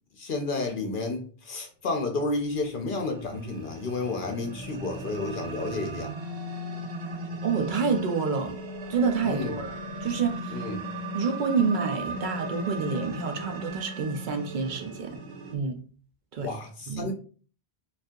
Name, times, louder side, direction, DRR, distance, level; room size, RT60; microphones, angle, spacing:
voice 1, 0.2-6.1 9.3-9.6 10.5-10.8 16.4-17.1, left 3 dB, 60° left, 0.8 m, -31 dB
sound 1, 2.4-15.6, right 1 dB, 85° right, 0.9 m, -37 dB
voice 2, 7.4-8.6 8.9-9.7 10.0-10.6 11.1-15.2 15.5-15.8 16.3-16.5 16.9-17.1, right 5 dB, 60° right, 0.6 m, -28 dB
2.7 x 2.4 x 3.5 m
omnidirectional pair, 1.1 m